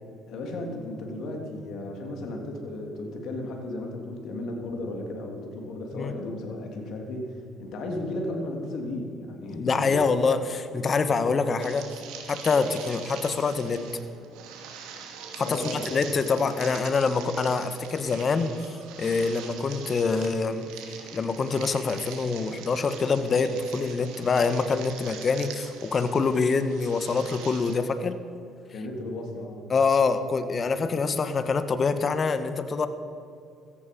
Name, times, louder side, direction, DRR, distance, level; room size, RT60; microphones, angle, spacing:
voice 1, 0.3-10.0 15.4-15.9 28.7-29.7, left 1 dB, 70° left, 2 dB, 3.2 m, -34 dB
voice 2, 9.5-11.9 12.3-13.8 15.3-20.7 21.1-28.2 29.7-32.9, left 4 dB, 40° left, 10 dB, 1.5 m, -25 dB
sound 1, 11.6-27.7, right 7 dB, 80° right, 2.5 m, -43 dB
17.5 x 14.0 x 5.5 m, 2.7 s
supercardioid pair, 70°, 0 cm